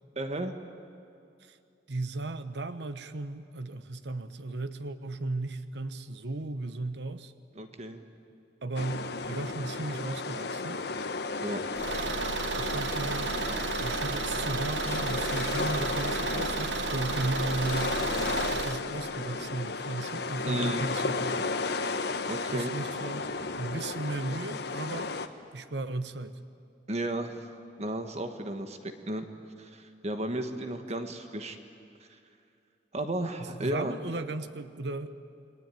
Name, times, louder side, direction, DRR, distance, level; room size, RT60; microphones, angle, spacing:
voice 1, 0.1-0.5 7.5-8.0 11.4-11.6 20.4-20.8 22.2-22.7 26.9-27.4 27.8-29.3 29.6-31.6 32.9-34.0, right 1 dB, 40° right, 7 dB, 1.4 m, -33 dB
voice 2, 1.9-7.3 8.6-10.8 12.6-13.3 13.8-18.0 18.5-21.5 22.5-23.3 23.6-25.1 25.5-26.4 33.4-35.1, right 2 dB, 70° right, 11 dB, 1.0 m, -35 dB
sound 1, 8.8-25.3, left 3 dB, 65° left, 1.2 m, -33 dB
Car / Engine, 11.7-18.8, right 5 dB, 90° right, 0.8 m, -33 dB
29.5 x 21.0 x 9.2 m, 2.5 s
head